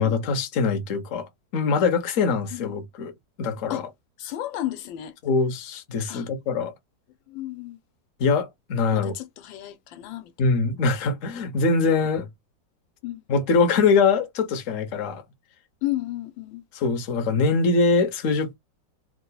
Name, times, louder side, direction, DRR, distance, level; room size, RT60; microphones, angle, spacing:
voice 1, 0.0-3.1 3.4-3.8 5.2-6.7 8.2-9.1 10.4-12.3 13.3-15.2 16.7-18.6, left 4 dB, 50° left, 1.1 m, -23 dB
voice 2, 4.2-5.1 6.1-6.3 7.3-7.8 8.9-10.3 13.0-13.2 15.8-16.6, left 15 dB, 90° left, 1.4 m, -33 dB
3.7 x 2.9 x 2.2 m
omnidirectional pair, 2.0 m